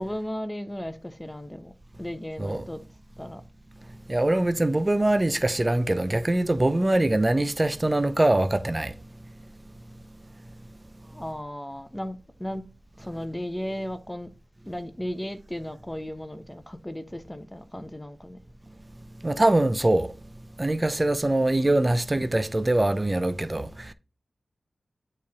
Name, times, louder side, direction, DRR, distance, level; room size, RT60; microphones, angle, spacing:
voice 1, 0.0-1.7 2.0-2.8 3.2-3.4 11.1-12.7 13.0-14.3 14.7-18.4, equal, 10° left, 1.0 m, -35 dB
voice 2, 4.1-8.9 19.2-20.1 20.6-23.7, right 1 dB, 25° right, 0.6 m, -23 dB
8.3 x 4.4 x 3.6 m
cardioid pair, 55°, 0 cm